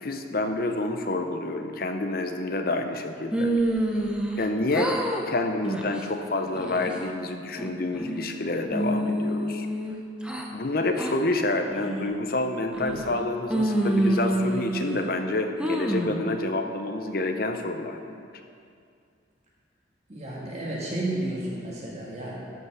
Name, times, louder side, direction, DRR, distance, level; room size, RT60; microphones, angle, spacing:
voice 1, 0.0-3.5 4.4-4.9 5.2-9.7 10.5-18.3, left 2 dB, 50° left, 5 dB, 0.8 m, -28 dB
sound 1, 3.3-4.5 4.7-5.2 5.6-6.0 6.5-7.1 7.6-8.3 8.7-10.5 11.0-11.1 11.7-12.1 12.7-13.2 13.5-15.1 15.6-16.2, right 1 dB, 5° right, 0.8 m, -27 dB
voice 2, 20.1-22.4, right 1 dB, 35° right, -5 dB, 1.8 m, -32 dB
13.0 x 5.7 x 6.4 m, 2.4 s
head